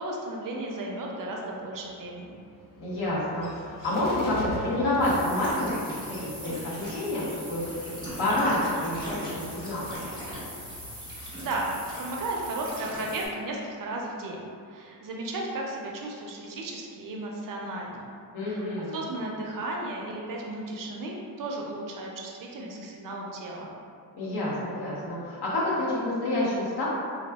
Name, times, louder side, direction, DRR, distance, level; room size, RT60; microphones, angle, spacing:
voice 1, 0.0-2.4 11.1-11.7 12.0-14.4 14.7-18.1 18.5-18.6 18.9-23.7, right 2 dB, 55° right, -1 dB, 0.5 m, -34 dB
Bird, 1.9-13.3, left 1 dB, 55° left, 0.6 m, -43 dB
voice 2, 2.8-5.9 6.2-7.9 8.2-9.9 18.3-19.0 24.1-26.9, left 1 dB, 75° left, -8 dB, 1.1 m, -28 dB
sound 1, 5.0-13.3, equal, 10° left, 0.7 m, -39 dB
4.2 x 2.2 x 2.2 m, 2.4 s
wide cardioid pair, 145°, 40 cm